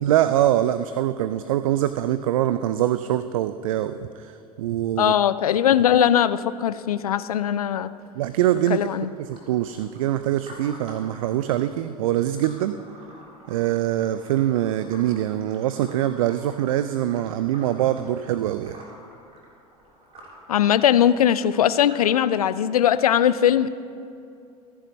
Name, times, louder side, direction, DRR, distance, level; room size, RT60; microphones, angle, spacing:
voice 1, 0.0-5.1 8.2-8.8 9.2-12.8 13.5-18.8, right 12 dB, 60° right, 12 dB, 0.5 m, -24 dB
voice 2, 5.0-7.9 8.7-9.1 20.5-23.7, left 10 dB, 70° left, 15 dB, 0.5 m, -20 dB
sound 1, 8.3-22.4, right 1 dB, 30° right, 3.7 m, -49 dB
28.5 x 10.5 x 3.1 m, 2.5 s
figure-of-eight pair, 75°, 20 cm